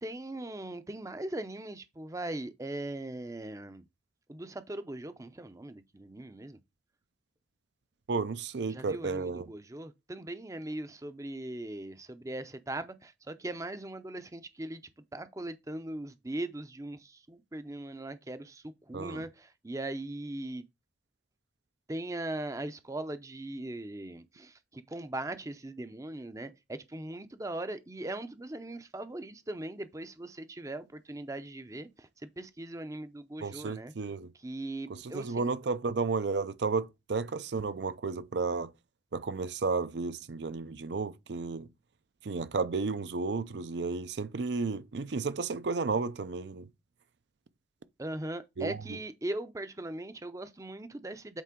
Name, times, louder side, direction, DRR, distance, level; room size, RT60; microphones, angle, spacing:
voice 1, 0.0-3.8 4.3-6.6 8.7-14.8 15.1-20.6 21.9-32.1 32.4-33.9 34.4-35.5 48.0-51.4, right 1 dB, 15° right, 0.5 m, -39 dB
voice 2, 8.1-9.5 18.9-19.3 33.4-34.3 34.9-38.7 39.1-41.7 42.2-46.7 48.6-49.0, right 4 dB, 65° right, 0.5 m, -33 dB
8.3 x 4.3 x 3.7 m
head